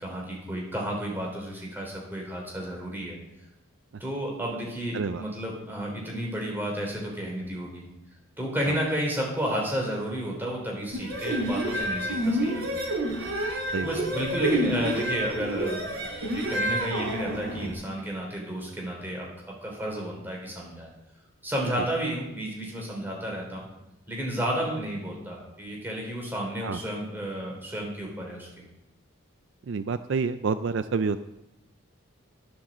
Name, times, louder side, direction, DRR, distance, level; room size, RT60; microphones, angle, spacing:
voice 1, 0.0-3.2 4.0-7.8 8.4-12.8 13.8-16.0 16.3-19.3 19.6-20.9 21.4-23.7 24.1-28.5, right 1 dB, 10° right, -2 dB, 3.6 m, -32 dB
sound 1, 10.9-17.7, right 1 dB, 90° right, 3.3 m, -28 dB
voice 2, 29.7-31.2, right 5 dB, 55° right, 12 dB, 0.4 m, -28 dB
13.0 x 7.3 x 7.3 m, 0.91 s
head